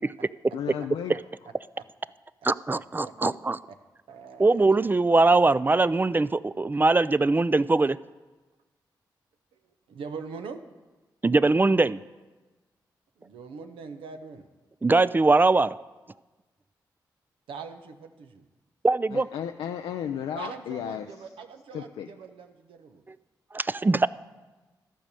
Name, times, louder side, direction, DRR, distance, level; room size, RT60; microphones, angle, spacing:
voice 1, 0.5-1.1 19.1-21.1 21.7-22.1, left 9 dB, 80° left, 5 dB, 0.4 m, -33 dB
voice 2, 2.4-3.6 4.4-8.0 11.2-12.0 14.8-15.8 18.8-19.3 23.5-24.1, right 3 dB, 20° right, 17 dB, 0.4 m, -21 dB
voice 3, 4.1-4.7 9.5-9.6 9.9-10.6 13.2-14.5 17.5-18.5 20.3-23.0, right 5 dB, 80° right, 7 dB, 0.7 m, -42 dB
13.0 x 5.1 x 6.8 m, 1.2 s
supercardioid pair, 40°, 9 cm